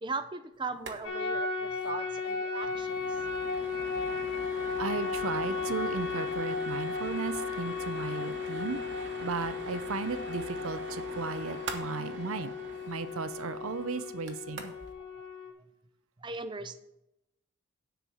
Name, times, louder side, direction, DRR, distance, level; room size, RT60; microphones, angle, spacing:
voice 1, 0.0-3.2 15.0-15.3 16.2-16.8, right 3 dB, 20° right, 10 dB, 0.5 m, -39 dB
sound 1, 0.7-1.0 1.3-1.4 1.7-1.9 2.2-14.9, right 3 dB, 55° right, 1.1 m, -44 dB
sound 2, 1.0-15.5, left 5 dB, 55° left, 2.0 m, -35 dB
voice 2, 4.8-12.5 12.9-14.7, right 4 dB, 75° right, 12 dB, 0.6 m, -36 dB
10.0 x 4.6 x 7.0 m, 0.88 s
head